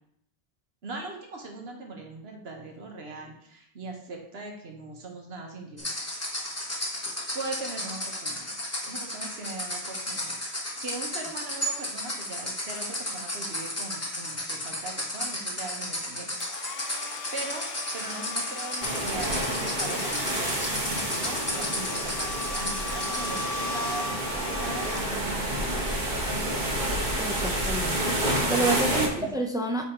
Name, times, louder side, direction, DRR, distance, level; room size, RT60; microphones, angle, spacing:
voice 1, 0.8-5.9 7.3-8.5 8.8-10.4 10.8-16.3 16.6-16.8 17.3-17.7 17.9-27.0 28.6-29.4, right 3 dB, 70° right, 1 dB, 1.4 m, -40 dB
sound 1, 5.8-23.4, left 1 dB, 15° left, 1.1 m, -34 dB
Domestic sounds home sounds, 16.4-25.6, left 3 dB, 70° left, 0.9 m, -37 dB
sound 2, 18.8-29.1, right 1 dB, 50° right, 1.3 m, -29 dB
voice 2, 27.2-29.8, right 2 dB, 5° right, 2 dB, 0.4 m, -30 dB
7.7 x 3.5 x 4.3 m, 0.71 s
omnidirectional pair, 1.1 m